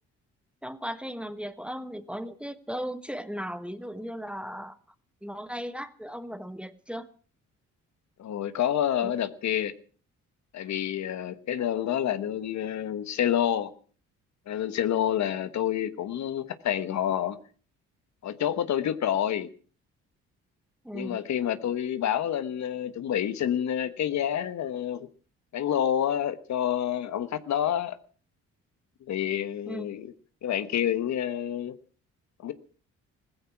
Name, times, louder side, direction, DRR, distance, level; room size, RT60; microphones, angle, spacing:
voice 1, 0.6-4.8 5.2-7.1 9.0-9.1 20.8-21.2 29.7-29.9, equal, 5° right, 1.3 m, -36 dB
voice 2, 8.2-9.7 10.5-13.7 14.5-17.4 18.2-19.5 20.9-25.1 25.5-28.0 29.1-30.1 30.4-31.8 32.4-32.5, left 10 dB, 65° left, 1.3 m, -28 dB
16.5 x 15.0 x 5.9 m
cardioid pair, 90°, 30 cm